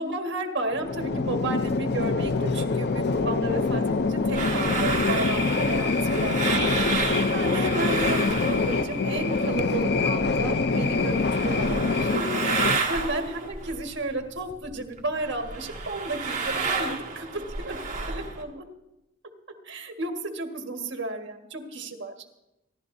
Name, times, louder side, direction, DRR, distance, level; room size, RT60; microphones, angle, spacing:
voice 1, 0.0-6.8 7.3-17.8 18.1-18.7 19.6-22.1, right 2 dB, 65° right, 4 dB, 1.6 m, -32 dB
sound 1, 0.7-12.8, left 4 dB, 55° left, 0.5 m, -25 dB
sound 2, 3.1-9.8 10.1-14.7 15.0-18.4, right 4 dB, 40° right, 1.7 m, -31 dB
26.0 x 12.0 x 2.7 m, 0.90 s
head